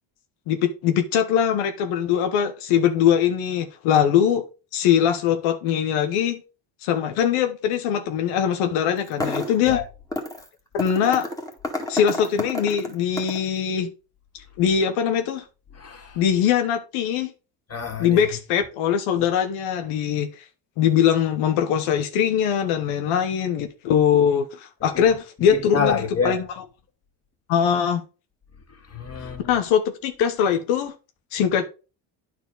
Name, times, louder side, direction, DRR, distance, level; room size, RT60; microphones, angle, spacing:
voice 1, 0.5-4.4 4.7-6.4 6.8-9.8 10.7-11.3 11.9-13.9 14.6-15.4 16.2-17.3 18.0-20.4 20.8-26.5 27.5-28.0 29.4-30.9 31.3-31.7, left 8 dB, 85° left, 1.1 m, -22 dB
sound 1, 9.0-9.7 10.1-10.5 10.8-13.5, left 2 dB, 5° left, 2.0 m, -30 dB
voice 2, 15.8-16.2 17.7-18.2 23.6-23.7 24.9-25.0 25.5-26.4 28.9-29.5, left 5 dB, 30° left, 2.5 m, -27 dB
9.5 x 4.7 x 3.8 m
cardioid pair, 95°, 49 cm